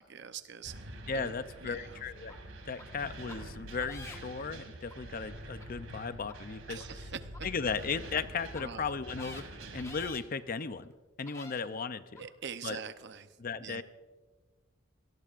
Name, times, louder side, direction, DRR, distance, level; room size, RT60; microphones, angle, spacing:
voice 1, 0.0-1.4 1.6-2.0 6.7-7.3 8.6-8.9 12.2-13.3 13.6-13.8, right 7 dB, 60° right, 10 dB, 0.8 m, -44 dB
sound 1, 0.6-10.1, right 1 dB, 90° right, 2.6 m, -46 dB
voice 2, 1.1-2.3 2.6-6.8 7.4-9.4 9.7-10.9 11.2-12.3 12.6-12.8 13.4-13.8, left 5 dB, 45° left, 12 dB, 0.6 m, -36 dB
sound 2, 2.3-2.4 2.8-2.9 3.3-3.4 3.8-4.4 4.9-5.0 5.6-5.7 6.2-6.3 6.8-6.9 7.3-7.4 8.1-8.2 8.5-8.6 9.1-9.4 9.8-10.2 10.8-10.9 11.2-11.6 12.1-12.2, left 2 dB, 15° left, 1.4 m, -48 dB
26.0 x 18.5 x 2.5 m, 1.3 s
head